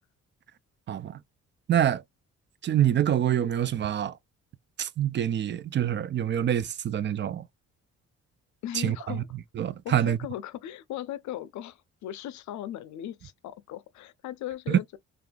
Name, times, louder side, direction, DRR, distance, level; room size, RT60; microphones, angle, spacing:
voice 1, 0.9-1.2 1.7-2.0 2.6-4.1 4.8-7.5 8.7-9.0 9.6-10.2 14.7-14.8, right 10 dB, 40° right, 0.4 m, -25 dB
voice 2, 8.6-9.3 9.8-15.0, left 12 dB, 70° left, 0.5 m, -38 dB
3.4 x 2.5 x 2.2 m
cardioid pair, 90°, 30 cm